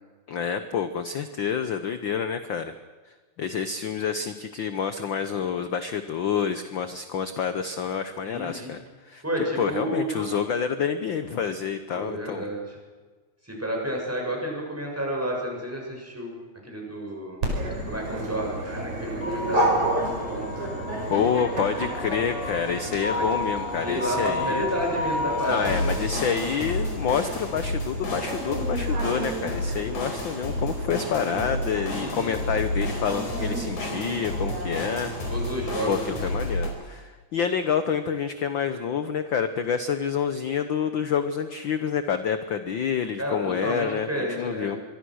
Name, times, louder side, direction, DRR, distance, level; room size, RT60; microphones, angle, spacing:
voice 1, 0.3-2.8 3.0-9.2 9.5-12.5 21.1-24.7 25.5-35.4 35.8-44.1 44.4-44.8, left 7 dB, 65° left, 10 dB, 1.2 m, -28 dB
voice 2, 8.2-8.7 9.2-10.3 11.9-12.6 13.4-16.3 16.6-17.4 17.8-20.8 21.1-21.2 23.1-23.2 23.8-26.1 31.9-32.3 35.3-36.5 43.2-44.7, equal, 5° right, -1 dB, 6.9 m, -31 dB
Dog, 17.4-36.3, right 1 dB, 75° right, 6.4 m, -32 dB
sound 1, 19.2-36.7, left 2 dB, 85° left, 6.2 m, -31 dB
25.5 x 23.0 x 6.4 m, 1.4 s
omnidirectional pair, 3.4 m